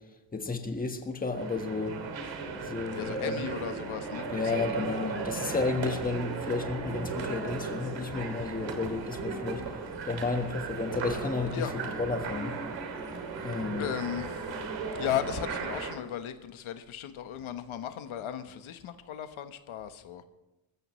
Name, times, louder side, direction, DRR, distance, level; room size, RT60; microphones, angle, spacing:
voice 1, 0.3-2.0 2.6-3.4 4.3-9.6 10.0-12.5 13.4-13.9, left 3 dB, 20° left, 1.5 m, -32 dB
sound 1, 1.3-16.0, right 4 dB, 65° right, 2.8 m, -36 dB
voice 2, 2.9-5.2 11.5-11.7 13.8-14.5 15.0-20.2, left 10 dB, 85° left, 1.3 m, -36 dB
25.5 x 14.5 x 3.2 m
cardioid pair, 150°, 48 cm